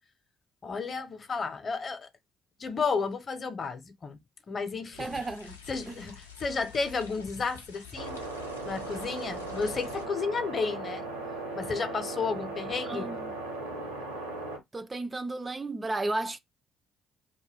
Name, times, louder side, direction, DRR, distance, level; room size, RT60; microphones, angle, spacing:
voice 1, 0.6-2.1 2.6-4.2 4.5-5.1 5.7-8.2 8.6-11.1 11.5-13.1, left 4 dB, 40° left, 0.6 m, -32 dB
sound 1, 4.9-10.1, left 7 dB, 85° left, 0.5 m, -48 dB
voice 2, 5.0-5.6 5.9-6.0 12.9-13.3 14.7-16.4, right 2 dB, 25° right, 0.3 m, -33 dB
sound 2, 8.0-14.6, right 3 dB, 85° right, 0.9 m, -37 dB
2.2 x 2.2 x 3.3 m
figure-of-eight pair, 45°, 0 cm